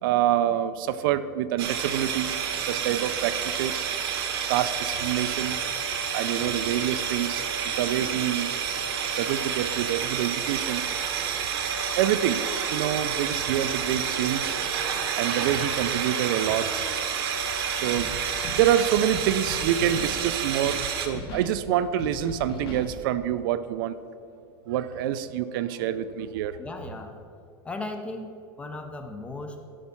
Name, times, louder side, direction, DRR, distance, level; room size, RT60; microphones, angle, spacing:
voice 1, 0.0-3.9 4.5-5.6 6.1-8.7 9.0-10.9 12.0-14.6 15.2-17.0 17.7-18.2 18.5-24.0 24.7-26.6, right 11 dB, 65° right, 13 dB, 0.4 m, -27 dB
sound 1, 1.6-21.1, right 7 dB, 80° right, 1.2 m, -29 dB
Scratching (performance technique), 17.9-18.1 18.4-18.8 19.1-20.1 20.6-20.8 21.1-21.5 22.0-22.8, left 3 dB, 90° left, 2.0 m, -37 dB
voice 2, 26.6-27.1 27.6-28.3 28.6-29.6, left 2 dB, 10° left, 5 dB, 0.5 m, -36 dB
12.5 x 5.3 x 5.7 m, 2.4 s
supercardioid pair, 175°, 13 cm